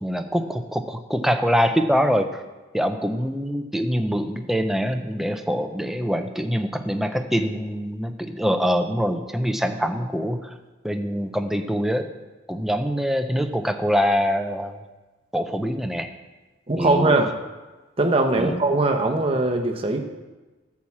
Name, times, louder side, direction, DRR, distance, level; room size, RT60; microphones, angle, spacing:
voice 1, 0.0-2.4 2.7-10.5 10.8-12.1 12.5-14.8 15.3-16.1 16.8-17.2 18.4-18.6, equal, ahead, 7 dB, 0.5 m, -24 dB
voice 2, 16.7-17.3 18.0-20.0, right 2 dB, 30° right, 3 dB, 0.9 m, -21 dB
11.5 x 4.8 x 7.3 m, 1.2 s
head